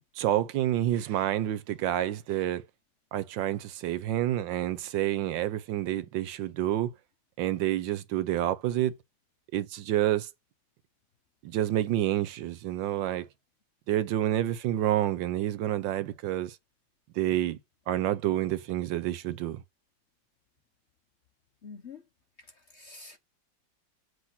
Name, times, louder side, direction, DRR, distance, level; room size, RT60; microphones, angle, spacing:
voice 1, 0.2-2.6 3.1-6.9 7.4-9.0 9.5-10.3 11.4-13.2 13.9-16.6 17.2-17.6 17.9-19.6, right 13 dB, 80° right, 1.4 m, -28 dB
voice 2, 21.6-22.0 22.4-23.2, left 4 dB, 50° left, 0.9 m, -47 dB
7.9 x 2.9 x 5.8 m
omnidirectional pair, 2.0 m